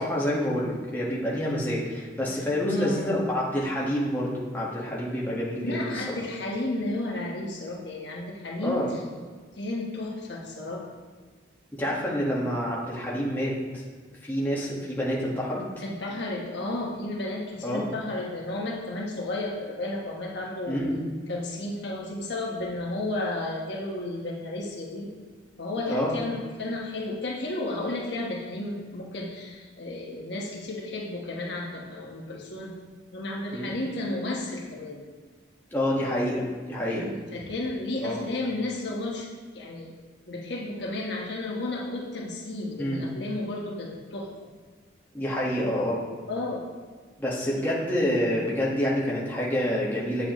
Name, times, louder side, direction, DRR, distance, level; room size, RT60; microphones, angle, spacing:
voice 1, 0.0-6.0 8.6-8.9 11.8-13.8 14.2-15.6 17.6-17.8 20.7-21.1 25.9-26.2 33.5-33.8 35.7-37.0 38.0-38.2 42.8-43.0 45.1-46.0 47.2-50.3, equal, 10° left, -6 dB, 1.5 m, -27 dB
voice 2, 2.6-3.0 5.6-8.9 9.6-10.8 15.8-20.8 21.3-25.1 25.6-32.7 33.1-35.0 36.9-39.3 39.5-39.9 40.3-44.3 46.3-46.6, left 2 dB, 60° left, -2 dB, 1.2 m, -32 dB
8.2 x 7.8 x 3.1 m, 1.5 s
head